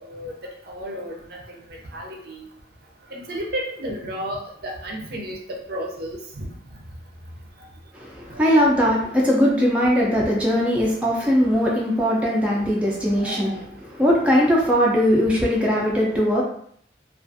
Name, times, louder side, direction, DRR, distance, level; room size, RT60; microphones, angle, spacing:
voice 1, 0.7-1.1 1.9-2.5 3.1-5.3 5.7-6.5 8.3-8.4 10.2-10.3 12.6-12.7 13.2-13.6, equal, 55° right, -1 dB, 0.5 m, -32 dB
voice 2, 7.9-13.6 13.8-16.4, equal, 5° right, -4 dB, 0.4 m, -20 dB
2.4 x 2.4 x 2.5 m, 0.64 s
head